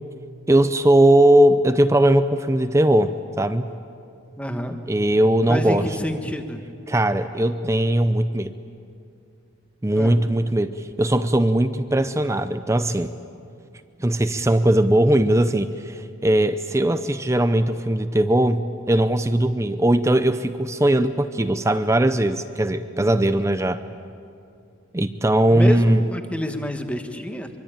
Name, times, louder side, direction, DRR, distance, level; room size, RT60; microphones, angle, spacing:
voice 1, 0.5-3.1 3.4-3.7 4.9-5.8 6.9-8.5 9.8-10.7 11.0-13.1 14.0-23.8 24.9-26.0, right 1 dB, 15° right, 10 dB, 0.6 m, -19 dB
voice 2, 4.4-4.8 5.5-6.6 10.0-10.2 25.5-27.5, equal, 5° left, 6 dB, 1.4 m, -28 dB
24.0 x 24.0 x 8.9 m, 2.5 s
head